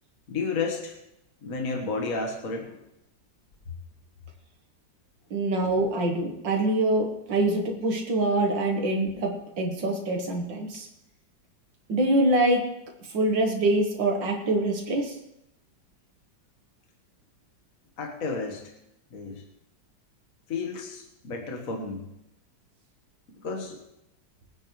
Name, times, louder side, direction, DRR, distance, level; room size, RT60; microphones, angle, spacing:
voice 1, 0.3-1.0 1.4-2.8 18.0-18.7 19.1-19.4 20.5-22.1 23.4-23.8, left 4 dB, 50° left, 2 dB, 1.8 m, -32 dB
voice 2, 5.3-10.9 11.9-12.7 13.1-15.2, right 2 dB, 80° right, 2 dB, 2.1 m, -25 dB
23.0 x 10.0 x 3.2 m, 0.84 s
omnidirectional pair, 2.0 m